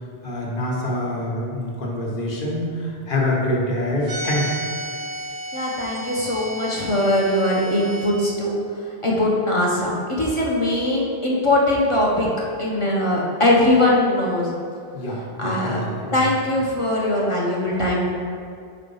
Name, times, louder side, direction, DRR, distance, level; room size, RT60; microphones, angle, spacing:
voice 1, 0.2-4.5 14.9-16.3, left 1 dB, 55° left, -3 dB, 1.3 m, -25 dB
sound 1, 4.0-8.1, equal, 75° right, 1.1 m, -32 dB
voice 2, 5.5-8.6 9.0-12.3 12.6-14.5 15.4-15.8 16.1-18.1, left 1 dB, 30° left, -4 dB, 0.9 m, -21 dB
4.7 x 4.0 x 5.4 m, 2.3 s
omnidirectional pair, 1.1 m